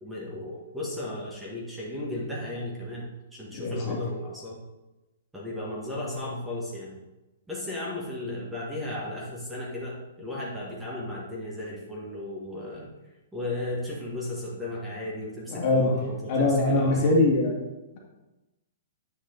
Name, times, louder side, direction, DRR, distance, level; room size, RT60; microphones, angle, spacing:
voice 1, 0.0-3.0 3.3-4.6 5.3-7.0 7.5-12.9 13.3-17.1, left 1 dB, 5° right, -5 dB, 1.6 m, -35 dB
voice 2, 3.5-4.0 15.5-15.9 16.3-17.5, left 2 dB, 35° left, -2 dB, 2.0 m, -22 dB
9.2 x 4.9 x 3.9 m, 1.0 s
hypercardioid pair, 155°, 0 cm